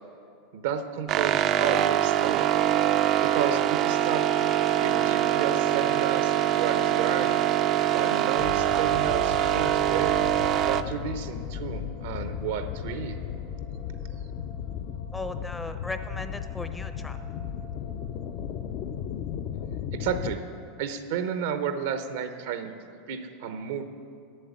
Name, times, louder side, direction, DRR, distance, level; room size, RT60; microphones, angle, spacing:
voice 1, 0.5-2.5 3.2-4.4 4.8-7.4 7.9-10.2 10.7-13.2 19.9-20.4 20.8-22.7 23.1-23.8, right 7 dB, 75° right, 8 dB, 0.8 m, -32 dB
sound 1, 1.1-10.8, right 11 dB, 45° right, 0.4 m, -24 dB
sound 2, 3.4-20.6, left 1 dB, 85° left, 2.7 m, -50 dB
sound 3, 8.4-20.4, left 8 dB, 55° left, 0.5 m, -35 dB
voice 2, 15.1-17.2, left 2 dB, 10° left, 9 dB, 0.6 m, -37 dB
7.7 x 7.3 x 8.4 m, 2.4 s
supercardioid pair, 120°, 0 cm